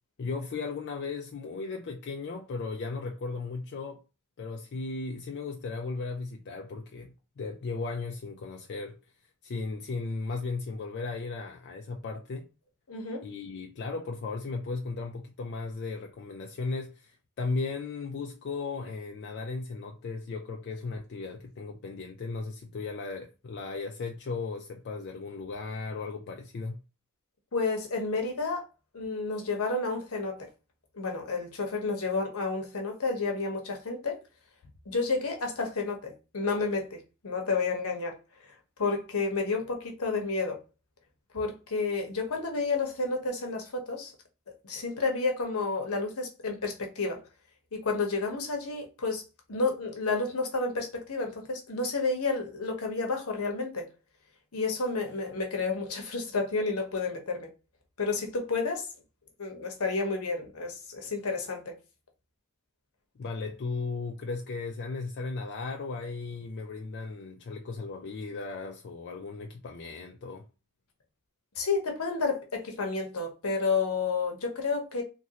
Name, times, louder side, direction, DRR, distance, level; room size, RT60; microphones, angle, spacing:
voice 1, 0.2-4.0 4.4-9.0 9.4-12.5 13.2-26.8 34.6-34.7 63.2-70.4, left 4 dB, 50° left, 0.4 m, -36 dB
voice 2, 12.9-13.3 27.5-28.7 28.9-30.5 30.9-34.2 34.9-38.2 38.4-40.6 41.3-44.1 44.6-47.2 47.7-49.2 49.5-53.9 54.5-57.5 58.0-58.9 59.4-61.8 71.6-75.0, left 4 dB, 75° left, 0.9 m, -30 dB
3.0 x 2.6 x 2.8 m
head